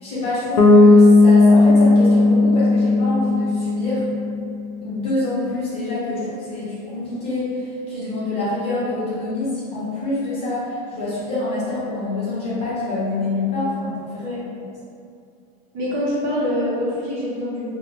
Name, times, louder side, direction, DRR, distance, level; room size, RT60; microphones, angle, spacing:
voice 1, 0.0-4.1 4.8-14.2, left 2 dB, 30° left, -8 dB, 0.7 m, -26 dB
Bass guitar, 0.6-4.4, left 2 dB, 90° left, 0.4 m, -14 dB
voice 2, 15.7-17.7, left 1 dB, 55° right, -7 dB, 0.8 m, -25 dB
2.7 x 2.0 x 2.8 m, 2.4 s
cardioid pair, 170°, 20 cm